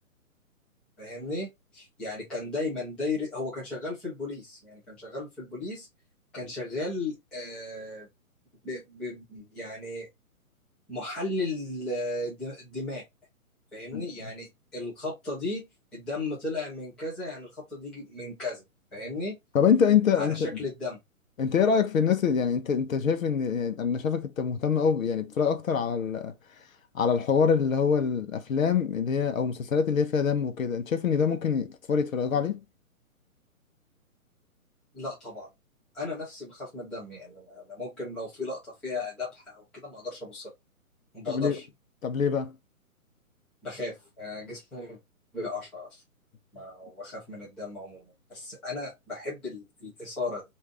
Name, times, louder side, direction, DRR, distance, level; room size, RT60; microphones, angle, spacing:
voice 1, 1.0-5.9 6.3-8.1 8.6-10.1 10.9-13.0 13.7-15.7 15.9-18.6 18.9-19.3 20.2-21.0 34.9-35.5 35.9-40.5 41.1-41.6 43.6-45.0 45.3-46.0 46.5-50.4, left 2 dB, ahead, 0.5 m, -35 dB
voice 2, 19.5-20.5 21.4-26.3 26.9-32.6 41.3-41.6 42.0-42.5, left 6 dB, 65° left, 0.9 m, -25 dB
3.2 x 2.6 x 3.7 m
figure-of-eight pair, 135°, 44 cm